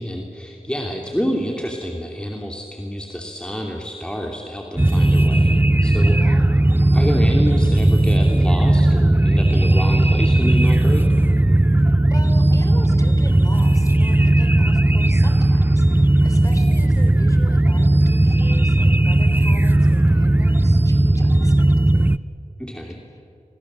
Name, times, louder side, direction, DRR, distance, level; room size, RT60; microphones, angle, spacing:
voice 1, 0.0-5.5 5.8-6.2 6.9-11.0 22.6-23.0, equal, 5° left, 0 dB, 2.8 m, -27 dB
sound 1, 4.8-22.2, right 1 dB, 15° right, 0.6 m, -16 dB
voice 2, 6.1-6.5 12.1-22.1 23.1-23.2, left 1 dB, 25° left, 5 dB, 4.1 m, -40 dB
28.0 x 23.0 x 7.6 m, 2.4 s
wide cardioid pair, 55°, 14 cm